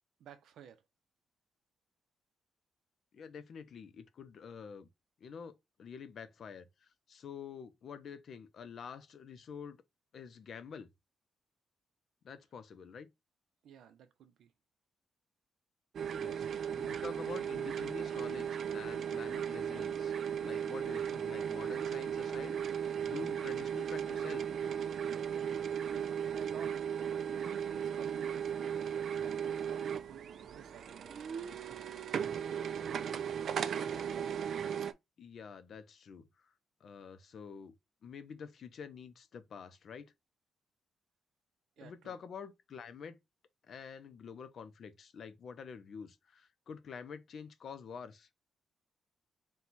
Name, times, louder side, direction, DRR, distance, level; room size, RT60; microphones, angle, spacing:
voice 1, 0.2-0.8 13.6-14.5 25.9-26.9 27.4-31.3 41.8-42.2, right 8 dB, 75° right, 0.7 m, -53 dB
voice 2, 3.1-4.9 5.2-5.5 5.8-6.7 7.1-9.8 10.1-10.9 12.2-13.1 16.2-16.5 16.8-20.1 20.4-24.5 35.2-36.3 36.8-37.7 38.0-40.1 41.8-43.2 43.7-48.3, left 6 dB, 45° left, 0.6 m, -47 dB
sound 1, 15.9-34.9, right 8 dB, 50° right, 0.4 m, -36 dB
4.4 x 2.3 x 3.9 m
cardioid pair, 175°, 0 cm